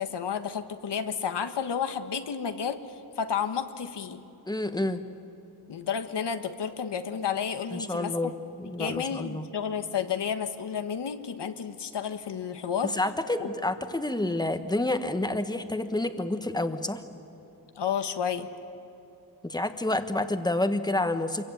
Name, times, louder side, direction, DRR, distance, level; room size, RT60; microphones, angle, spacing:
voice 1, 0.0-4.2 5.7-8.3 8.8-12.9 13.4-13.5 17.7-18.5, left 7 dB, 90° left, 8 dB, 1.5 m, -31 dB
voice 2, 4.5-5.0 7.7-8.3 8.6-9.5 12.8-17.0 19.4-21.4, left 2 dB, 10° left, 8 dB, 1.2 m, -29 dB
27.5 x 22.5 x 9.2 m, 2.9 s
wide cardioid pair, 160°, 40 cm